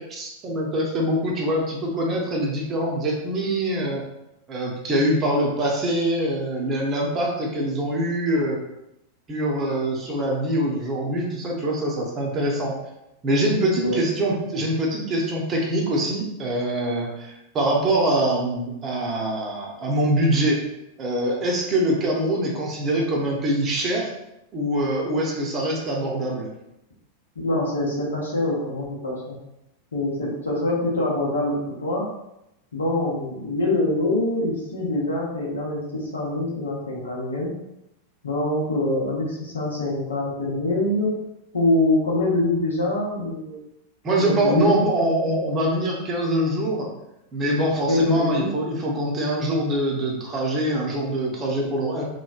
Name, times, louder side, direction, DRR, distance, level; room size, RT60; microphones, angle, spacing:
voice 1, 0.0-4.0 4.5-8.6 9.3-12.7 13.2-20.6 21.0-24.1 24.5-26.5 44.0-46.9 47.3-52.0, right 1 dB, 30° right, -1 dB, 0.7 m, -24 dB
voice 2, 27.4-29.4 29.9-32.1 32.7-37.5 38.2-41.1 41.5-43.6 44.2-44.9 47.9-48.5, left 1 dB, 70° left, -4 dB, 0.8 m, -24 dB
3.0 x 2.2 x 2.4 m, 0.86 s
figure-of-eight pair, 90°, 0 cm